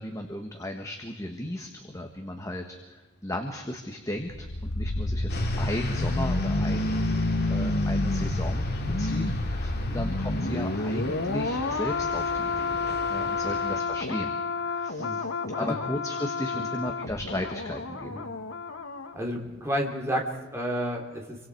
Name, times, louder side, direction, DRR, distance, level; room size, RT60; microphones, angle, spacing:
voice 1, 0.0-12.8 13.1-15.3 15.5-18.2, left 1 dB, 15° left, 3 dB, 1.6 m, -35 dB
sound 1, 4.2-19.1 19.4-19.6, left 2 dB, 70° left, 1.5 m, -29 dB
sound 2, 5.3-13.8, left 2 dB, 50° left, 2.7 m, -38 dB
voice 2, 19.1-21.4, equal, 15° right, 1 dB, 3.2 m, -31 dB
28.5 x 24.5 x 4.7 m, 1.2 s
head